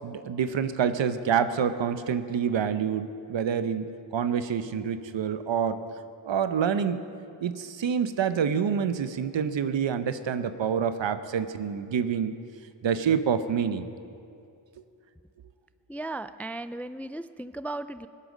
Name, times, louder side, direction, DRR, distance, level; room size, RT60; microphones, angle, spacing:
voice 1, 0.0-5.8 6.2-7.0 7.4-12.4 12.8-13.9, right 7 dB, 70° right, 11 dB, 0.9 m, -27 dB
voice 2, 15.9-18.1, right 2 dB, 5° left, 13 dB, 0.3 m, -36 dB
18.5 x 9.9 x 6.2 m, 2.5 s
cardioid pair, 55°, 46 cm